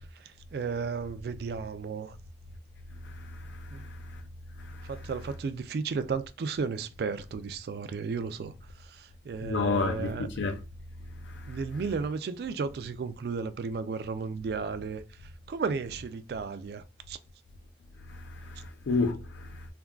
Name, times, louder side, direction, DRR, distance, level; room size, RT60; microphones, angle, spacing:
voice 1, 0.2-2.2 3.7-3.8 4.8-8.5 8.8-10.3 11.5-15.0 15.5-17.2, right 5 dB, 60° right, 0.3 m, -34 dB
voice 2, 3.0-4.2 4.6-4.9 9.4-10.6 11.2-11.6 18.1-19.7, left 3 dB, 80° left, 0.4 m, -32 dB
3.4 x 2.2 x 2.3 m
head